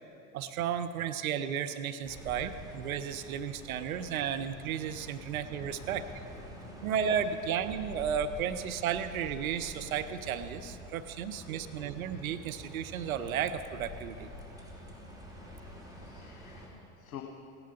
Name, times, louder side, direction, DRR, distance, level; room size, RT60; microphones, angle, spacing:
voice 1, 0.3-6.3 6.8-14.3, right 8 dB, 75° right, 11 dB, 0.8 m, -33 dB
sound 1, 2.0-16.7, left 1 dB, 10° right, 2.9 m, -47 dB
voice 2, 6.4-6.8 11.4-11.5 11.7-12.5 15.8-17.2, left 11 dB, 70° left, 1 dB, 1.4 m, -52 dB
16.5 x 11.0 x 5.5 m, 2.7 s
hypercardioid pair, 80°, 43 cm